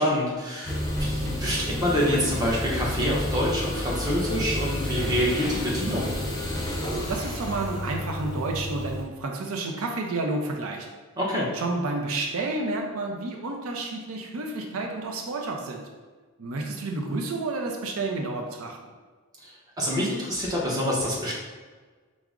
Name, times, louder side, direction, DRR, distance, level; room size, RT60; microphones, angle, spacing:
voice 1, 0.0-6.1 11.2-11.5 19.4-21.3, equal, 15° right, -4 dB, 0.8 m, -26 dB
sound 1, 0.7-9.0, left 1 dB, 15° left, 0.7 m, -30 dB
voice 2, 7.1-10.9 11.5-15.8 16.4-18.8, right 2 dB, 80° right, 2 dB, 0.5 m, -30 dB
4.6 x 2.0 x 3.6 m, 1.4 s
head